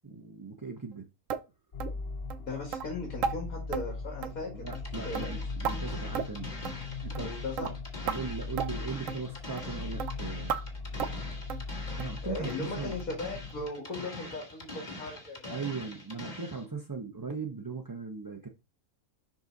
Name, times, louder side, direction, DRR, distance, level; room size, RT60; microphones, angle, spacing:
voice 1, 0.0-1.1 4.5-7.4 8.0-10.6 12.0-13.0 15.5-18.5, right 4 dB, 25° right, 0.5 m, -39 dB
sound 1, 1.3-1.5 1.8-2.0 2.3-2.4 2.7-2.9 3.2-3.4 3.7-3.9 4.2-4.5 4.7-4.9 5.2-5.8 6.2-6.4 6.7-6.8 7.2-7.3 7.6-7.7 8.1-8.2 8.6-8.7 9.1-9.2 9.6-9.7 10.0-10.1 10.5-10.6 11.0-11.2 11.5-11.7 12.0-12.2 12.5-12.6 13.0-13.1 13.5-13.6, right 7 dB, 70° right, 1.0 m, -34 dB
sound 2, 1.7-13.6, left 4 dB, 50° left, 1.1 m, -39 dB
voice 2, 2.5-4.7 5.0-5.3 7.2-7.7 12.2-15.6, left 3 dB, 85° left, 2.5 m, -38 dB
sound 3, 4.7-16.6, left 1 dB, 30° left, 2.2 m, -44 dB
5.8 x 5.4 x 3.9 m
omnidirectional pair, 1.5 m